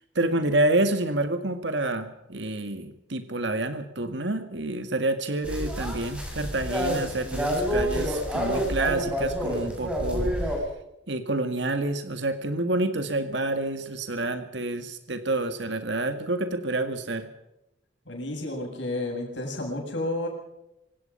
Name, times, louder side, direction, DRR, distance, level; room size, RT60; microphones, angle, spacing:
voice 1, 0.2-10.5 11.1-17.3, right 2 dB, 70° right, 8 dB, 1.9 m, -28 dB
sound 1, 5.4-10.6, equal, 5° right, 7.5 m, -28 dB
voice 2, 18.1-20.3, left 2 dB, 75° left, 1 dB, 7.8 m, -31 dB
26.0 x 18.0 x 5.6 m, 0.87 s
head